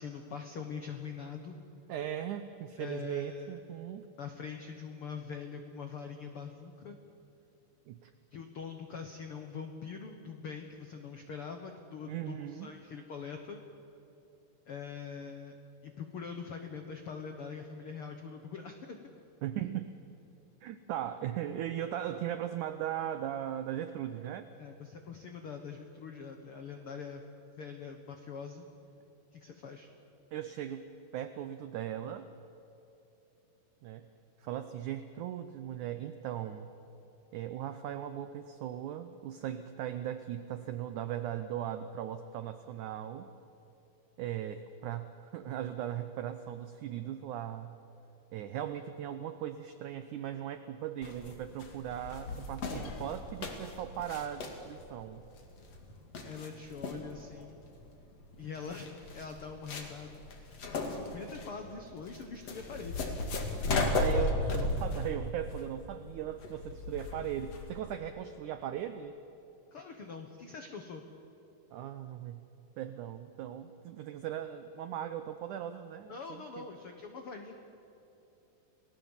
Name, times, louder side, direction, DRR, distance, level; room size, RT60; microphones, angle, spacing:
voice 1, 0.0-1.6 2.8-3.6 4.2-7.0 8.3-13.6 14.7-15.5 15.8-19.1 24.6-27.2 27.6-28.7 29.3-29.9 56.2-57.6 58.4-63.0 69.7-71.0 76.1-77.6, left 5 dB, 80° left, 5 dB, 1.2 m, -43 dB
voice 2, 1.9-4.1 7.9-8.1 12.1-12.7 19.4-19.9 20.6-24.5 30.3-32.3 33.8-34.1 34.4-36.7 37.3-43.3 44.2-47.7 48.3-55.2 63.9-69.2 71.7-72.4 72.8-76.7, right 10 dB, 85° right, 10 dB, 1.7 m, -38 dB
sound 1, 51.0-67.8, left 2 dB, 45° left, 2.8 m, -36 dB
30.0 x 19.0 x 7.3 m, 3.0 s
omnidirectional pair, 4.5 m